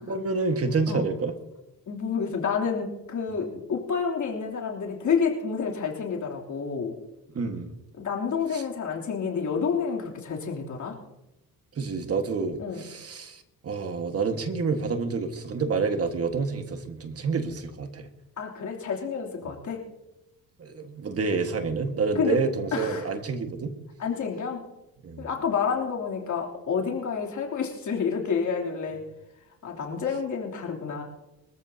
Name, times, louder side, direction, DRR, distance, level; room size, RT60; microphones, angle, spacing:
voice 1, 0.0-1.3 7.3-7.7 8.5-8.6 11.7-18.1 20.6-23.7 25.0-25.3, right 4 dB, 40° right, 7 dB, 1.7 m, -28 dB
voice 2, 1.9-6.9 8.0-11.0 12.6-12.9 18.4-19.8 22.1-22.4 22.7-23.1 24.0-24.6 25.2-29.0 29.6-31.0, left 6 dB, 55° left, 0 dB, 3.2 m, -29 dB
24.0 x 14.0 x 2.8 m, 0.95 s
cardioid pair, 100°, 36 cm